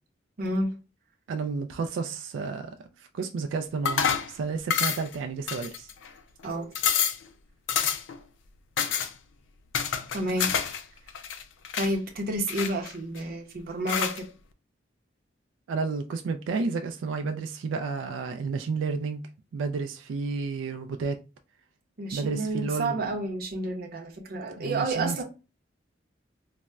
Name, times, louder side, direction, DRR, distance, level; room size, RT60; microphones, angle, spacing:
voice 1, 0.4-0.7 6.4-6.7 10.1-10.5 11.8-14.3 22.0-25.2, right 1 dB, 55° right, 0.7 m, -30 dB
voice 2, 1.3-5.9 15.7-19.2 19.5-21.2 22.1-23.1 24.6-25.2, right 4 dB, 90° right, 0.3 m, -31 dB
sound 1, 3.9-4.3 4.7-5.2 5.5-6.1 6.4-6.5 6.8-7.2 7.7-8.2 8.8-9.1 9.7-10.8 11.1-11.9 12.5-13.2 13.9-14.2, left 7 dB, 80° left, 0.4 m, -27 dB
4.1 x 2.1 x 2.3 m
head